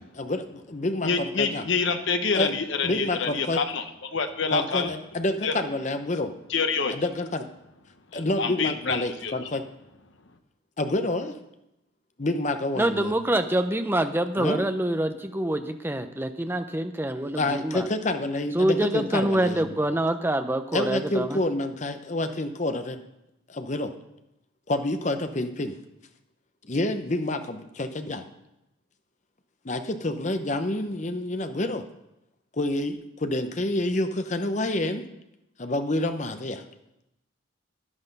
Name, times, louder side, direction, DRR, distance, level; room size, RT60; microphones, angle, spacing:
voice 1, 0.0-1.7 2.3-2.5 2.8-3.6 4.5-6.3 6.9-7.5 8.1-9.6 10.8-11.4 12.2-13.1 14.4-14.6 17.4-19.7 20.7-23.0 23.5-23.9 24.7-25.7 26.7-28.2 29.6-31.8 32.5-35.0 35.6-36.6, left 1 dB, 35° left, 8 dB, 0.8 m, -28 dB
voice 2, 1.0-4.9 5.4-5.5 6.5-6.9 8.1-9.3, left 5 dB, 65° left, 8 dB, 0.9 m, -27 dB
voice 3, 12.8-17.9 18.5-21.4, right 1 dB, 10° right, 8 dB, 0.6 m, -26 dB
10.5 x 9.8 x 5.3 m, 0.88 s
head